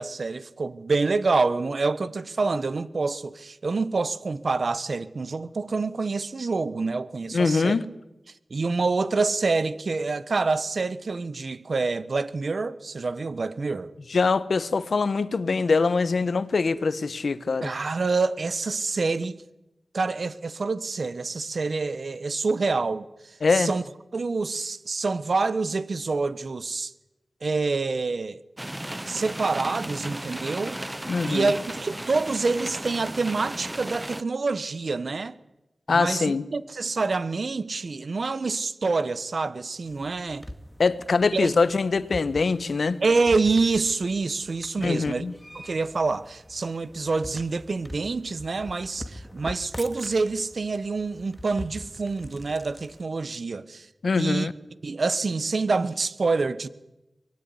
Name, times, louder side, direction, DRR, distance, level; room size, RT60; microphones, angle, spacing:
voice 1, 0.0-7.8 8.5-13.9 17.6-19.4 19.9-23.1 23.5-23.8 24.1-26.9 27.4-28.4 29.1-30.8 31.3-35.4 35.9-40.4 41.3-41.5 43.0-45.2 45.5-53.9 54.1-54.5 54.8-56.7, right 3 dB, 65° right, 1.2 m, -27 dB
voice 2, 7.3-7.8 14.1-17.7 23.4-23.7 31.1-31.5 35.9-36.5 40.8-43.0 44.8-45.3 54.0-54.5, left 4 dB, 75° left, 1.2 m, -23 dB
sound 1, 28.6-34.2, right 1 dB, 15° right, 0.9 m, -35 dB
sound 2, 39.8-53.0, equal, ahead, 2.4 m, -44 dB
23.5 x 20.5 x 9.9 m
cardioid pair, 50°, 0 cm